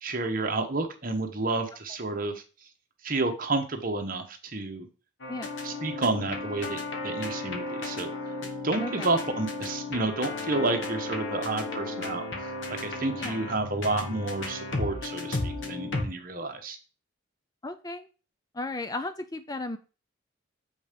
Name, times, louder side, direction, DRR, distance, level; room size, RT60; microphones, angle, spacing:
voice 1, 0.0-2.4 3.0-4.9 5.6-8.1 8.6-12.2 12.7-16.8, right 2 dB, 40° right, 5 dB, 1.2 m, -30 dB
sound 1, 5.2-16.0, left 2 dB, 60° left, 1.6 m, -34 dB
voice 2, 13.1-13.5 17.6-18.1 18.5-19.8, left 2 dB, 20° left, 10 dB, 0.4 m, -35 dB
7.4 x 5.2 x 5.2 m, 0.34 s
head